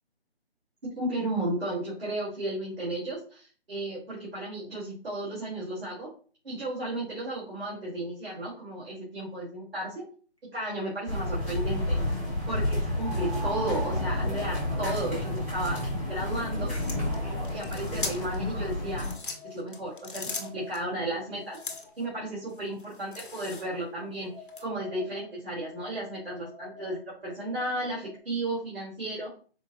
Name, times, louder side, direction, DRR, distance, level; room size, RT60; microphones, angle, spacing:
voice 1, 0.9-6.1 6.4-10.0 10.5-12.0 12.5-15.8 16.1-16.8 17.5-19.1 19.4-21.6 22.0-24.3 24.6-29.3, right 1 dB, 60° right, -6 dB, 1.8 m, -34 dB
sound 1, 10.4-10.5 13.0-18.1 18.9-22.6 23.6-28.2, equal, 30° right, 0.5 m, -47 dB
sound 2, 11.1-19.1, left 1 dB, 10° right, 1.0 m, -30 dB
sound 3, 16.7-18.4 18.9-20.8 21.5-22.0 22.5-23.9 24.5-24.6, left 3 dB, 50° left, 0.9 m, -39 dB
4.4 x 2.1 x 2.9 m, 0.41 s
figure-of-eight pair, 175°, 33 cm